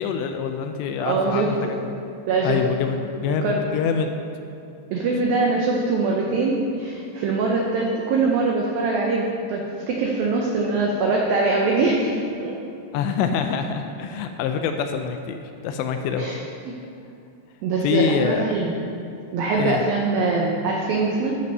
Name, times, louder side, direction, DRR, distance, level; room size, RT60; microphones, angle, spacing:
voice 1, 0.0-1.9 2.4-4.1 12.9-16.3 17.8-18.5 19.6-19.8, left 6 dB, 85° left, 6 dB, 2.7 m, -25 dB
voice 2, 1.0-1.8 2.3-2.6 3.3-3.6 4.9-12.2 12.4-12.5 16.2-16.4 17.6-18.7 19.3-21.3, right 3 dB, 85° right, -1 dB, 2.0 m, -23 dB
14.0 x 5.3 x 5.4 m, 2.6 s
omnidirectional pair, 5.3 m